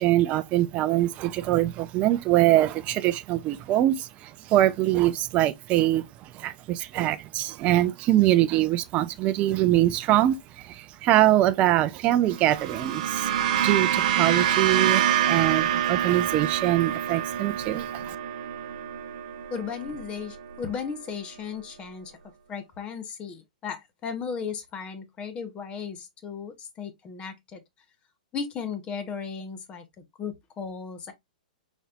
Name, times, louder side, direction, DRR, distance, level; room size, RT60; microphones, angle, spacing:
voice 1, 0.0-13.3 13.6-18.2, right 14 dB, 30° right, 0.4 m, -23 dB
sound 1, 12.3-20.8, right 10 dB, 50° right, 0.8 m, -26 dB
voice 2, 19.5-22.1 22.5-27.6 28.3-29.8 30.2-31.1, left 6 dB, 25° left, 0.9 m, -35 dB
4.1 x 3.2 x 2.3 m
hypercardioid pair, 130°, 4 cm